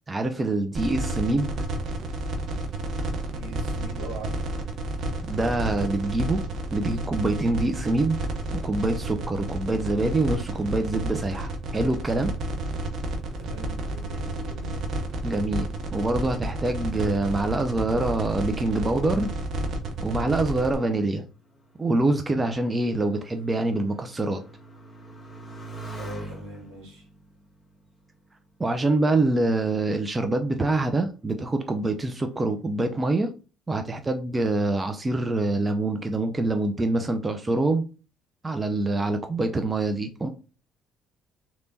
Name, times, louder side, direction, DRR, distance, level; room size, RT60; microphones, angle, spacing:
voice 1, 0.1-1.5 5.3-6.4 6.7-8.2 8.5-12.3 15.2-19.3 20.0-21.3 21.8-24.4 28.6-33.3 33.7-37.9 38.4-40.3, right 2 dB, 25° right, 0.5 m, -25 dB
sound 1, 0.7-20.7, right 2 dB, 60° right, 0.9 m, -31 dB
voice 2, 3.3-4.4 13.4-14.9 26.0-27.1, right 1 dB, 80° right, 1.7 m, -41 dB
Motorcycle, 20.7-29.0 29.8-30.4, right 2 dB, ahead, 1.7 m, -45 dB
3.4 x 3.0 x 2.7 m
hypercardioid pair, 60°, 0 cm